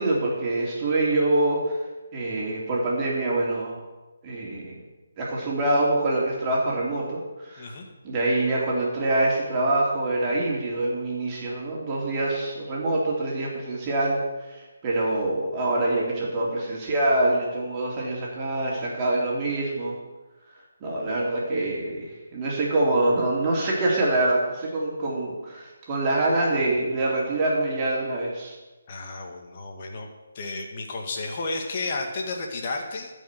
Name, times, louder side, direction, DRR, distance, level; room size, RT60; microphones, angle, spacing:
voice 1, 0.0-1.7 2.1-3.8 4.2-4.8 5.2-7.7 8.0-19.9 20.8-28.5, right 2 dB, 25° right, -4 dB, 3.1 m, -25 dB
voice 2, 7.6-7.9 28.9-30.1 30.3-33.1, left 3 dB, 40° left, 2 dB, 2.0 m, -32 dB
13.0 x 5.4 x 8.0 m, 1.1 s
figure-of-eight pair, 150°, 0 cm